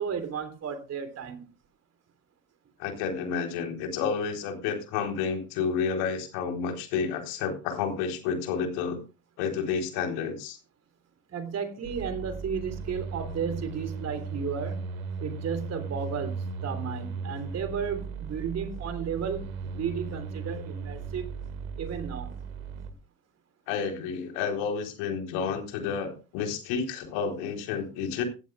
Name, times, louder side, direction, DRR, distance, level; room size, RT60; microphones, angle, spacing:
voice 1, 0.0-1.4 11.3-14.8 15.2-19.5 19.8-21.3 21.8-22.3, right 7 dB, 40° right, 9 dB, 3.4 m, -33 dB
voice 2, 2.8-9.0 9.4-10.6 23.7-28.2, left 6 dB, 65° left, 4 dB, 3.9 m, -30 dB
sound 1, 11.8-22.9, right 5 dB, 80° right, 2.2 m, -37 dB
17.0 x 15.0 x 2.4 m, 0.30 s
hypercardioid pair, 75°, 41 cm